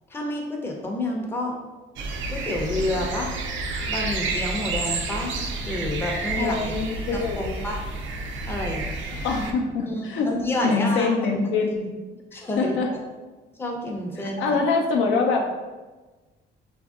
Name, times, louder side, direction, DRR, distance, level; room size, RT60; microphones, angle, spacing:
voice 1, 0.1-1.5 2.3-3.3 3.9-5.4 5.6-6.7 7.1-7.8 8.5-9.3 9.9-11.1 12.3-12.8 13.6-14.6, left 1 dB, 10° left, -1 dB, 0.5 m, -29 dB
sound 1, 2.0-9.5, right 3 dB, 70° right, 0.4 m, -30 dB
voice 2, 6.4-7.6 9.2-10.3 10.6-11.9 12.3-12.9 14.2-15.4, left 4 dB, 75° left, 2 dB, 0.4 m, -24 dB
2.9 x 2.6 x 2.3 m, 1.2 s
cardioid pair, 90°, 20 cm